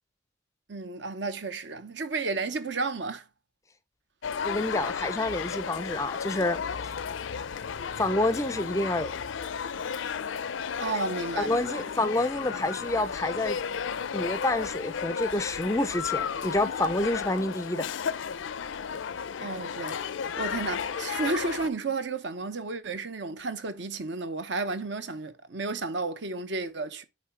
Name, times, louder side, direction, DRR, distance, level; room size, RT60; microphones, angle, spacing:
voice 1, 0.7-3.3 10.8-11.8 19.4-20.0 20.4-27.0, right 3 dB, 65° right, 0.8 m, -32 dB
sound 1, 4.2-21.7, left 6 dB, 75° left, 0.5 m, -33 dB
voice 2, 4.4-6.9 8.0-9.1 11.4-13.6 14.1-17.9, left 2 dB, 15° left, 0.4 m, -28 dB
8.6 x 3.5 x 4.4 m
head